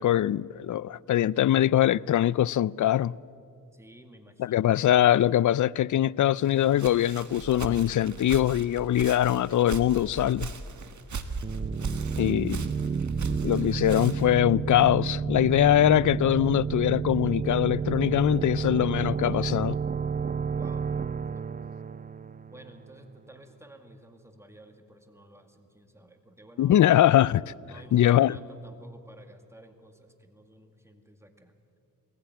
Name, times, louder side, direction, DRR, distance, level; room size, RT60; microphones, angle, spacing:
voice 1, 0.0-3.1 4.4-10.5 12.2-12.7 13.4-19.8 26.6-27.5 27.9-28.4, left 12 dB, 55° left, 0.4 m, -22 dB
voice 2, 3.7-4.8 13.6-14.2 20.5-20.9 21.3-21.5 22.5-26.8 27.6-31.5, right 1 dB, 5° right, 2.1 m, -53 dB
Walk footsteps, 6.4-14.4, right 4 dB, 55° right, 1.5 m, -38 dB
sound 1, 11.4-23.0, right 6 dB, 25° right, 0.6 m, -31 dB
20.5 x 15.5 x 9.2 m
cardioid pair, 65°, 36 cm